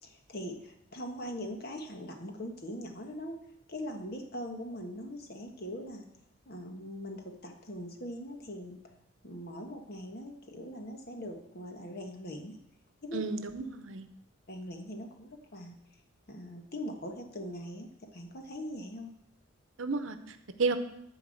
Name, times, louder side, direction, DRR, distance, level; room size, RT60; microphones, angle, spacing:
voice 1, 0.0-3.4 3.7-6.0 6.4-8.8 9.2-12.6 13.0-13.2 14.5-15.8 16.3-19.1, equal, 50° left, 3 dB, 1.5 m, -41 dB
voice 2, 13.1-14.1 19.8-20.8, right 4 dB, 70° right, 10 dB, 0.8 m, -32 dB
11.5 x 4.7 x 7.8 m, 0.79 s
head